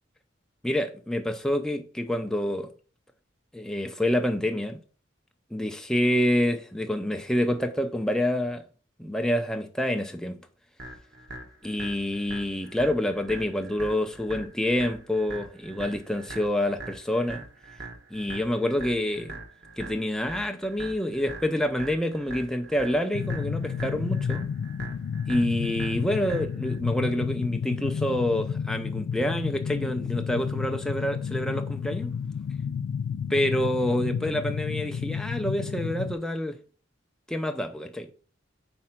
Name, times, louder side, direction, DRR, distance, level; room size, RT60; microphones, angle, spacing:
voice 1, 0.6-2.7 3.5-4.8 5.5-8.6 9.0-10.4 11.6-17.4 18.1-19.4 19.8-24.5 25.3-32.1 33.3-36.6 37.3-38.1, left 1 dB, 5° left, 0.5 m, -27 dB
sound 1, 10.8-26.8, right 3 dB, 55° right, 1.1 m, -42 dB
sound 2, 23.1-36.1, left 7 dB, 80° left, 0.3 m, -31 dB
4.9 x 4.4 x 5.8 m
head